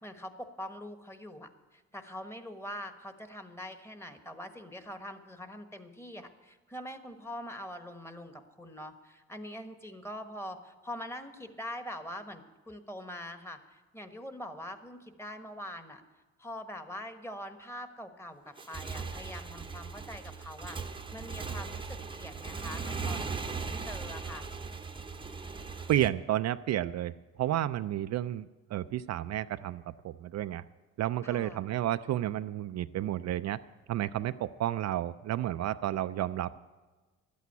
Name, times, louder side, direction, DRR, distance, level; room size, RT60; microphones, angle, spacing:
voice 1, 0.0-16.0 16.4-23.5 23.8-24.5 31.2-31.6, left 1 dB, 10° left, 8 dB, 1.3 m, -43 dB
Motorcycle / Engine, 18.5-26.1, right 4 dB, 15° right, 0.8 m, -38 dB
voice 2, 25.9-27.1 27.4-30.6 31.0-33.6 33.9-36.6, right 13 dB, 60° right, 11 dB, 0.4 m, -31 dB
12.0 x 8.4 x 9.4 m, 1.3 s
cardioid pair, 90°, 30 cm